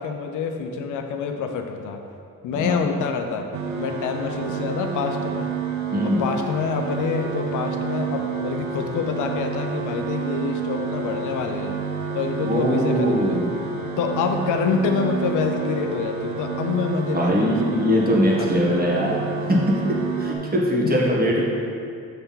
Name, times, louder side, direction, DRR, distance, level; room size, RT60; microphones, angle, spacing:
voice 1, 0.0-2.0 2.4-3.5 3.8-5.5 6.0-11.8 12.1-13.4 14.0-17.8 18.4-18.5 20.8-20.9, left 5 dB, 80° left, 4 dB, 0.6 m, -26 dB
voice 2, 2.5-2.8 5.9-6.2 12.4-13.6 17.1-19.6 19.9-21.4, equal, 30° right, -3 dB, 1.3 m, -22 dB
sound 1, 3.5-20.4, right 6 dB, 75° right, 0.8 m, -29 dB
5.9 x 3.4 x 5.6 m, 2.4 s
cardioid pair, 90°, 30 cm